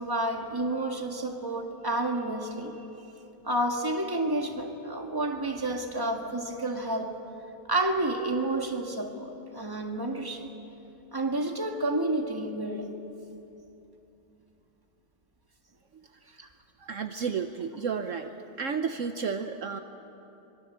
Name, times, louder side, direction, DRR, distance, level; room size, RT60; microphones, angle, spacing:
voice 1, 0.0-3.0 3.4-7.2 7.7-10.5 11.1-12.9, right 1 dB, 10° right, 2 dB, 1.5 m, -30 dB
voice 2, 16.8-18.3 18.6-19.8, right 6 dB, 70° right, 7 dB, 0.7 m, -32 dB
26.0 x 23.0 x 7.5 m, 2.9 s
omnidirectional pair, 2.4 m